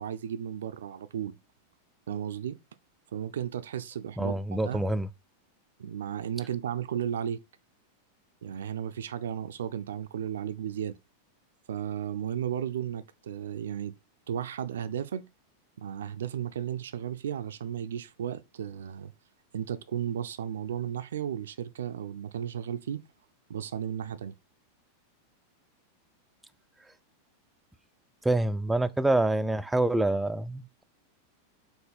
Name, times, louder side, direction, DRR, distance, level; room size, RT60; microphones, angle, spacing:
voice 1, 0.0-1.4 2.1-2.6 3.1-4.9 5.8-7.4 8.4-11.0 11.7-13.9 14.3-15.2 15.8-19.1 19.5-23.0 23.5-24.3, right 9 dB, 65° right, 0.5 m, -34 dB
voice 2, 4.2-5.1 28.2-30.8, right 2 dB, 5° right, 0.4 m, -26 dB
4.5 x 3.9 x 5.4 m
figure-of-eight pair, 90°, 0 cm